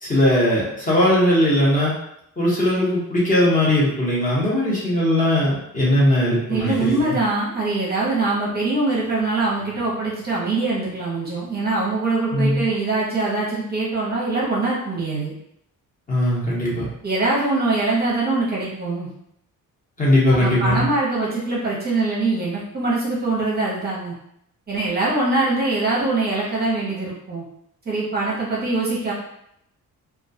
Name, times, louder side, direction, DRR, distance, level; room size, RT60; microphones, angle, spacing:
voice 1, 0.0-1.9 2.4-7.1 12.3-12.6 16.1-16.8 20.0-20.9, left 1 dB, 25° left, -6 dB, 0.8 m, -19 dB
voice 2, 6.5-15.3 17.0-19.1 20.3-24.1 24.7-27.4 27.9-29.1, right 3 dB, 30° right, -5 dB, 0.6 m, -23 dB
2.2 x 2.2 x 2.6 m, 0.75 s
cardioid pair, 145°, 33 cm